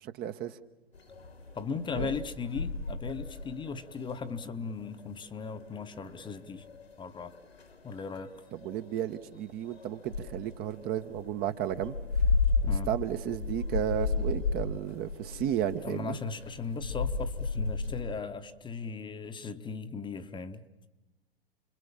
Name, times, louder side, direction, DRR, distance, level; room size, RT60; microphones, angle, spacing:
voice 1, 0.0-0.6 1.9-2.1 8.6-11.9 12.9-16.2, right 10 dB, 30° right, 9 dB, 1.1 m, -33 dB
sound 1, 0.9-18.0, left 4 dB, 85° left, 3.2 m, -34 dB
voice 2, 1.5-6.6 7.0-7.4 7.8-8.3 12.7-12.9 15.8-20.6, left 5 dB, 15° left, 9 dB, 1.1 m, -37 dB
29.5 x 22.0 x 7.2 m, 1.1 s
figure-of-eight pair, 105°, 30 cm